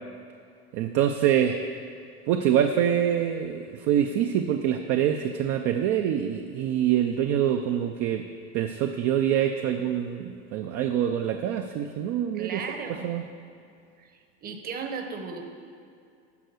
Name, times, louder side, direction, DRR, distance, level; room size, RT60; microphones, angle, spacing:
voice 1, 0.7-1.6 2.3-8.2 8.5-12.6 12.9-13.2, right 10 dB, 50° right, 5 dB, 0.6 m, -25 dB
voice 2, 12.3-13.1 14.0-14.1 14.4-15.4, right 5 dB, 30° right, 5 dB, 1.0 m, -35 dB
13.0 x 4.6 x 7.9 m, 2.4 s
supercardioid pair, 150°, 32 cm